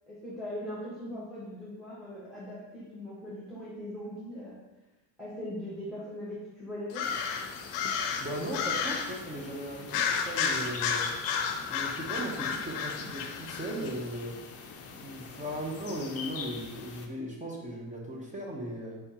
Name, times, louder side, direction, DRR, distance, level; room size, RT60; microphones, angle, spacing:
voice 1, 0.1-4.6 5.2-7.1, left 1 dB, ahead, -9 dB, 1.1 m, -40 dB
sound 1, 6.9-9.2 9.9-13.9, left 6 dB, 80° left, 0.6 m, -32 dB
sound 2, 7.0-17.1, left 5 dB, 35° left, 0.5 m, -45 dB
voice 2, 8.2-11.1 11.7-14.4 14.9-19.0, equal, 20° right, -2 dB, 0.6 m, -37 dB
4.5 x 3.5 x 2.8 m, 1.0 s
cardioid pair, 125°, 42 cm